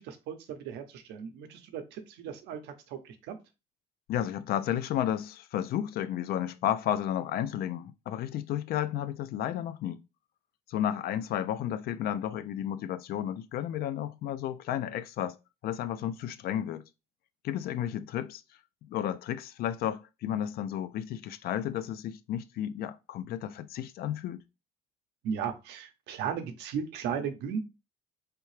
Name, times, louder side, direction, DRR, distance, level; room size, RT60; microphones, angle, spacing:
voice 1, 0.0-3.4 25.2-27.6, right 7 dB, 85° right, 0.7 m, -36 dB
voice 2, 4.1-10.0 10.7-16.8 17.4-18.4 18.8-24.4, left 11 dB, 65° left, 0.4 m, -32 dB
3.4 x 2.8 x 3.2 m
cardioid pair, 110°, 17 cm